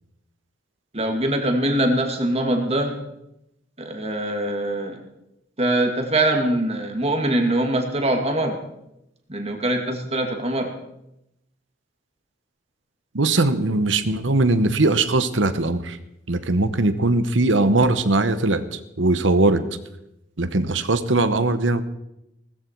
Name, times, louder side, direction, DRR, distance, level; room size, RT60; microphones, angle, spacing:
voice 1, 0.9-3.0 3.8-5.0 5.6-8.6 9.3-10.7, right 1 dB, 35° right, 4 dB, 2.4 m, -23 dB
voice 2, 13.1-16.0 16.3-19.6 20.4-21.8, right 2 dB, 85° right, 12 dB, 1.1 m, -20 dB
19.0 x 14.0 x 4.7 m, 0.85 s
head